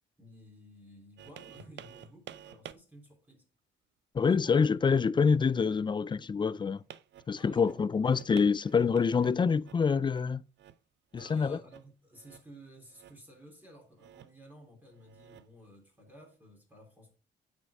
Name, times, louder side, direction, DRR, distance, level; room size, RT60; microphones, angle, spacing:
voice 1, 0.2-3.4 4.2-4.6 7.3-8.1 11.2-17.1, equal, 10° right, 3.3 m, -54 dB
sound 1, 1.2-2.7 3.3-3.4 6.8-9.8 10.1-10.3 10.6-10.8 11.1-11.4 11.7-11.9 12.1-12.5 12.8-13.4 14.0-14.4 14.9-15.7 16.3-16.4, right 10 dB, 65° right, 0.6 m, -51 dB
voice 2, 4.1-6.8 7.3-10.4 11.3-11.6, left 5 dB, 25° left, 0.3 m, -26 dB
8.7 x 5.4 x 3.5 m
cardioid pair, 90°, 20 cm